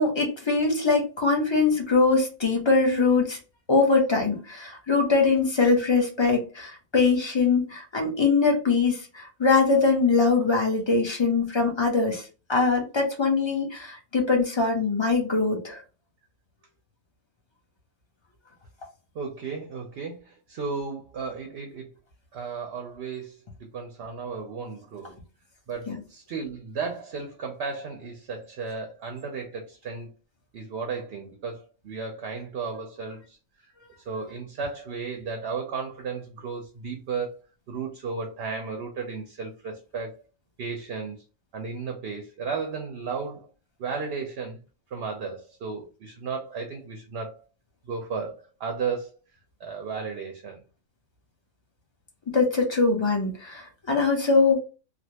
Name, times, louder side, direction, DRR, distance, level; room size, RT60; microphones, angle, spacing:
voice 1, 0.0-3.4 3.7-15.8 25.9-26.0 52.3-54.6, left 4 dB, 25° left, 0.8 m, -22 dB
voice 2, 19.1-21.9 22.3-23.4 23.7-25.1 25.7-30.1 30.5-33.4 34.1-37.3 37.7-40.1 40.6-41.2 41.5-43.5 43.8-44.6 44.9-47.4 47.9-49.1 49.6-50.6, right 5 dB, 55° right, 0.8 m, -34 dB
3.3 x 2.4 x 2.8 m
omnidirectional pair, 1.4 m